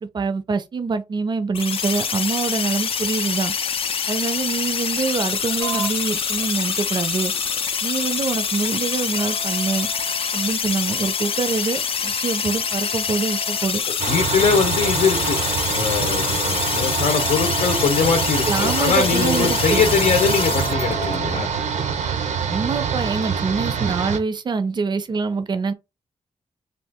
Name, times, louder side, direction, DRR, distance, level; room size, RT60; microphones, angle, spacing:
voice 1, 0.0-3.5 4.1-7.3 7.8-9.9 10.3-13.8 14.4-14.5 18.5-19.8 22.5-25.7, right 4 dB, 40° right, 0.4 m, -25 dB
sound 1, 1.5-20.7, left 6 dB, 50° left, 0.4 m, -25 dB
sound 2, 5.6-21.2, right 1 dB, 25° left, 0.8 m, -38 dB
sound 3, 14.0-24.2, right 6 dB, 90° right, 0.6 m, -25 dB
voice 2, 14.1-15.4 15.7-21.5, left 6 dB, 90° left, 0.7 m, -22 dB
2.7 x 2.4 x 3.4 m
wide cardioid pair, 140°, 12 cm